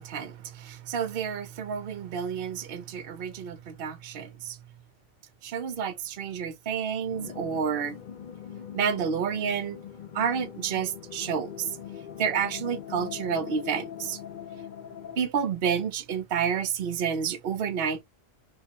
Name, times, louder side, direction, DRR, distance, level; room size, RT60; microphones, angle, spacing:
voice 1, 0.0-4.6 5.4-8.0 8.7-9.8 10.1-11.7 12.2-14.2 15.2-18.0, right 7 dB, 55° right, 0.9 m, -30 dB
sound 1, 7.1-15.2, left 9 dB, 60° left, 0.5 m, -42 dB
3.6 x 2.8 x 2.9 m
omnidirectional pair, 1.3 m